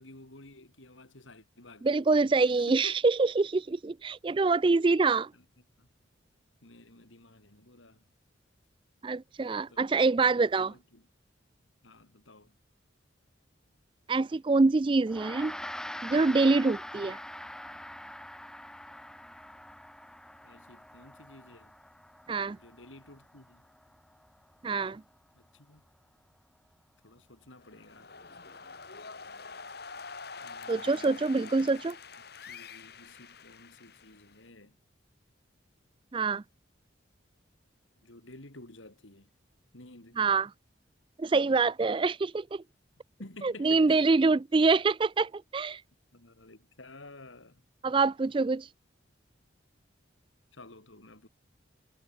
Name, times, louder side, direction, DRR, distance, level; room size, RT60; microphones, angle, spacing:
voice 1, 0.0-2.0 2.7-2.9 5.3-5.5 5.8-5.9 6.6-8.0 9.5-9.8 10.6-11.1 11.8-12.6 20.4-21.8 22.5-23.6 25.4-25.9 27.0-28.1 30.4-31.7 32.4-34.7 38.0-39.3 39.7-40.2 43.2-44.1 46.1-47.6 50.5-51.3, left 2 dB, 80° left, 3.5 m, -52 dB
voice 2, 1.8-5.3 9.0-10.7 14.1-15.5 16.0-17.2 22.3-22.6 24.6-25.0 30.7-32.0 36.1-36.4 40.2-40.5 41.2-42.6 43.4-45.8 47.8-48.7, right 3 dB, 25° right, 0.3 m, -25 dB
Gong, 15.1-24.6, left 1 dB, 5° left, 0.7 m, -44 dB
sound 1, 27.6-34.5, left 5 dB, 55° left, 2.1 m, -46 dB
head